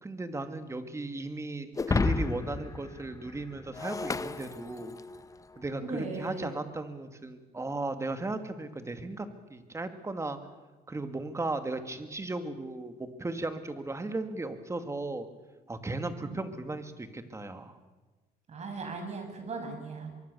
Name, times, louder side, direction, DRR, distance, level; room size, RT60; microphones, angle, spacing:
voice 1, 0.0-4.9 5.6-10.4 10.9-15.3 15.7-17.8, right 2 dB, 15° right, 8 dB, 2.3 m, -36 dB
Shatter, 1.8-5.2, left 4 dB, 20° left, 0.9 m, -32 dB
voice 2, 5.8-6.6 16.2-16.4 18.5-20.1, right 3 dB, 40° right, 5 dB, 6.8 m, -38 dB
24.0 x 23.0 x 7.0 m, 1.2 s
cardioid pair, 110°, 17 cm